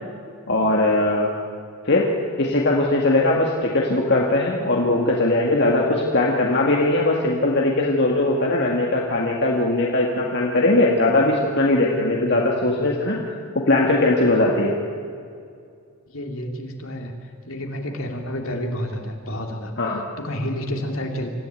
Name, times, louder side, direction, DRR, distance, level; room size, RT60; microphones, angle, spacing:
voice 1, 0.5-1.3 1.9-2.1 2.4-13.4 13.7-14.8 19.8-20.0, left 2 dB, 50° left, -1 dB, 1.9 m, -20 dB
voice 2, 12.7-13.0 16.1-17.1 17.5-19.7 20.2-21.3, equal, 70° left, 2 dB, 3.1 m, -30 dB
25.5 x 15.0 x 9.2 m, 2.4 s
head